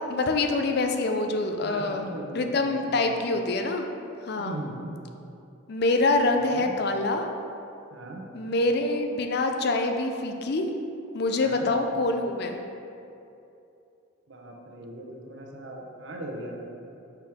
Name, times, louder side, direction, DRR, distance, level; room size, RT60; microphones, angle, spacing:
voice 1, 0.1-2.1 2.3-3.9 4.2-4.6 5.7-7.3 8.3-10.7 11.1-12.6, left 2 dB, 50° left, 5 dB, 0.4 m, -25 dB
voice 2, 1.6-3.0 4.4-5.0 6.3-6.7 7.9-8.2 11.4-11.7 14.3-16.6, right 1 dB, 65° right, 0 dB, 0.8 m, -39 dB
6.0 x 4.5 x 3.5 m, 2.8 s
head